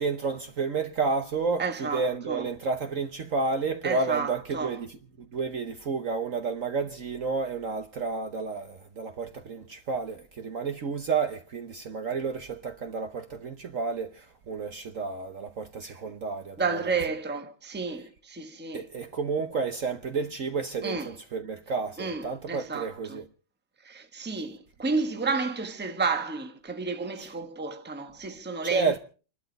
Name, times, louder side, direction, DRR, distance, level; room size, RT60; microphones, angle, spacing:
voice 1, 0.0-16.9 18.7-23.3 27.2-27.3 28.6-29.0, right 4 dB, 50° right, 1.2 m, -31 dB
voice 2, 1.6-2.5 3.8-4.8 16.6-18.8 20.8-21.1 22.0-23.2 23.8-29.0, right 4 dB, 5° right, 1.1 m, -31 dB
29.0 x 12.0 x 4.0 m
omnidirectional pair, 2.0 m